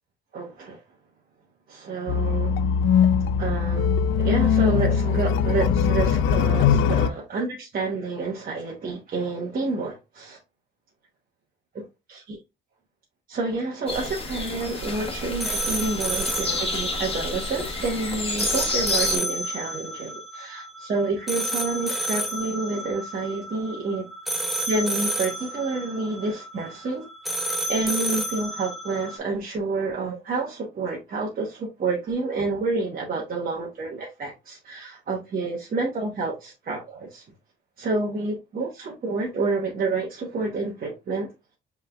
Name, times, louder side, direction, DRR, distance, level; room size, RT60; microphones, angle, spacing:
voice 1, 0.3-0.8 1.7-2.6 3.4-10.4 12.1-12.4 13.3-24.1 24.7-27.0 27.5-37.2 37.8-41.3, right 3 dB, 45° right, 1.1 m, -29 dB
sound 1, 2.1-7.1, left 7 dB, 85° left, 0.4 m, -21 dB
sound 2, 13.9-19.2, left 2 dB, 30° left, 1.2 m, -30 dB
sound 3, 14.8-29.2, right 1 dB, ahead, 0.8 m, -31 dB
5.5 x 3.3 x 2.3 m
cardioid pair, 90°, 20 cm